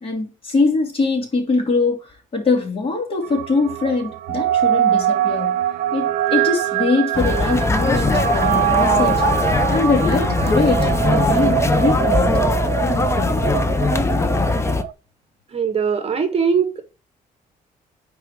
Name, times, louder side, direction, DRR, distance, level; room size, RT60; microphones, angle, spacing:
voice 1, 0.0-5.6 5.9-9.2 9.7-12.4 12.8-13.4, left 3 dB, 35° left, 2.7 m, -22 dB
sound 1, 3.2-14.9, right 12 dB, 80° right, 0.5 m, -23 dB
sound 2, 7.1-14.8, left 3 dB, 15° left, 0.6 m, -20 dB
voice 2, 15.5-16.8, right 6 dB, 40° right, 1.1 m, -20 dB
4.8 x 4.5 x 5.9 m
cardioid pair, 110°, 16 cm